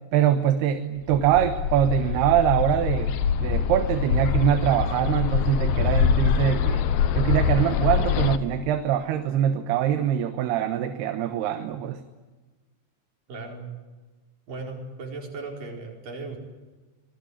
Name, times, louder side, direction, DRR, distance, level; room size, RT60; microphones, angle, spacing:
voice 1, 0.1-6.8 7.1-12.0, right 10 dB, 75° right, 8 dB, 3.1 m, -23 dB
Bird, 1.1-8.4, left 7 dB, 70° left, 2.7 m, -24 dB
voice 2, 13.3-13.7 14.5-16.4, right 3 dB, 50° right, 1 dB, 6.3 m, -36 dB
26.5 x 20.5 x 9.8 m, 1.3 s
omnidirectional pair, 4.9 m